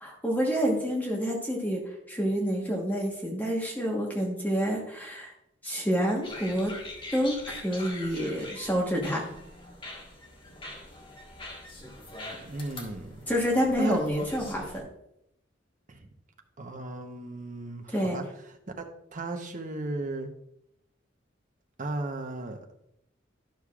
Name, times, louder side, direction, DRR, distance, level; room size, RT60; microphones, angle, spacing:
voice 1, 0.0-1.8 2.1-5.3 5.6-6.7 7.1-9.2 13.3-14.8 17.9-18.2, equal, 10° left, -1 dB, 1.2 m, -28 dB
sound 1, 6.2-14.8, left 2 dB, 25° left, 1.5 m, -43 dB
voice 2, 12.4-13.3 13.8-14.0 15.9-16.1 16.6-18.9 19.1-20.3 21.8-22.6, right 2 dB, 45° right, 5 dB, 0.9 m, -35 dB
11.5 x 6.4 x 2.4 m, 0.80 s
head